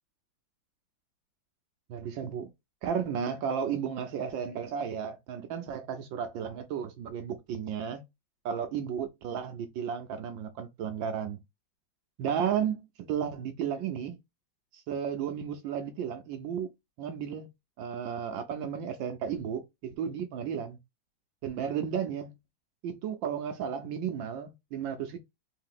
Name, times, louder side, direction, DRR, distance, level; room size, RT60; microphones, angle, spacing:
voice 1, 1.9-2.5 2.8-8.0 8.4-11.4 12.2-14.2 14.7-16.7 17.0-17.5 17.8-20.8 21.4-22.3 22.8-25.2, right 8 dB, 80° right, 1.5 m, -33 dB
3.8 x 2.7 x 3.7 m
omnidirectional pair, 2.1 m